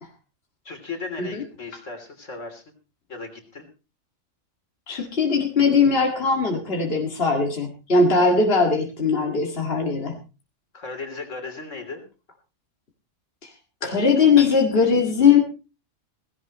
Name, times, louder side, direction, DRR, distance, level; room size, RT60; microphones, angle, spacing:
voice 1, 0.7-2.6 3.1-3.7 10.7-12.0, left 4 dB, 80° left, 4 dB, 3.7 m, -36 dB
voice 2, 4.9-10.1 13.4-13.5 13.8-15.4, left 5 dB, 50° left, 1 dB, 2.3 m, -20 dB
17.0 x 16.5 x 3.0 m, 0.32 s
omnidirectional pair, 1.3 m